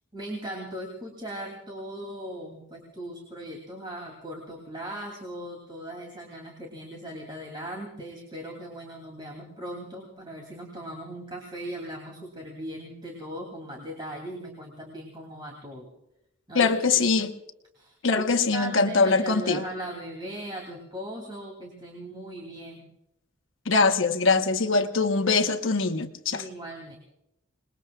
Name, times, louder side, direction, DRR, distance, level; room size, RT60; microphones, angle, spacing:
voice 1, 0.1-15.9 16.5-16.7 17.7-22.9 24.7-24.9 26.3-27.0, right 1 dB, 25° right, 2.8 m, -39 dB
voice 2, 16.5-17.3 18.0-19.6 23.7-26.4, left 4 dB, 65° left, 1.1 m, -23 dB
28.0 x 21.0 x 2.4 m
head